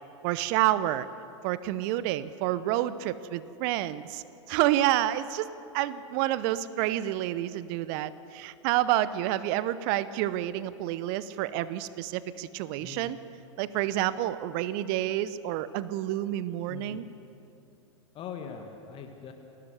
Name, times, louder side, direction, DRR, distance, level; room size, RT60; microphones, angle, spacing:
voice 1, 0.2-1.1 1.4-5.5 5.7-13.2 13.6-17.0, right 14 dB, 45° right, 16 dB, 0.8 m, -29 dB
voice 2, 12.8-13.1 16.7-17.0 18.1-19.3, left 7 dB, 35° left, 5 dB, 1.9 m, -41 dB
29.5 x 12.5 x 8.0 m, 2.7 s
figure-of-eight pair, 95°, 16 cm